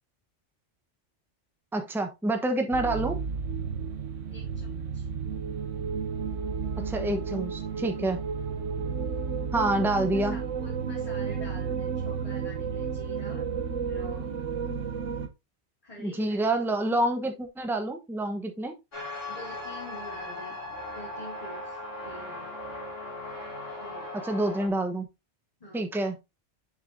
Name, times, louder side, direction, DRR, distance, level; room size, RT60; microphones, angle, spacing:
voice 1, 1.7-3.2 6.8-8.2 9.5-10.3 16.0-18.7 24.2-25.1 25.7-26.1, right 1 dB, ahead, 6 dB, 0.9 m, -27 dB
sound 1, 2.7-15.3, right 6 dB, 85° right, 1.2 m, -32 dB
voice 2, 4.3-5.1 9.8-10.0 10.3-13.5 13.8-14.4 15.8-16.5 19.3-20.6 20.9-22.5 23.8-24.1 25.6-25.8, equal, 30° left, -4 dB, 2.5 m, -46 dB
sound 2, 18.9-24.7, left 2 dB, 90° left, 3.0 m, -38 dB
7.4 x 6.9 x 2.7 m, 0.23 s
omnidirectional pair, 1.2 m